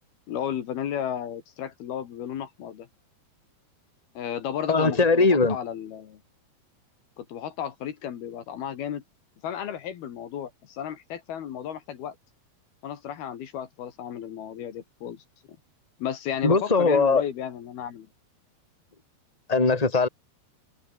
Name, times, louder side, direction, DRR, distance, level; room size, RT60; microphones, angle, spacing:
voice 1, 0.3-2.9 4.2-6.2 7.2-9.0 9.4-12.2 12.8-15.2 16.0-18.1, left 9 dB, 70° left, 3.8 m, -33 dB
voice 2, 4.7-5.6 16.4-17.2 19.5-20.1, left 3 dB, 10° left, 3.4 m, -20 dB
open air
omnidirectional pair, 4.7 m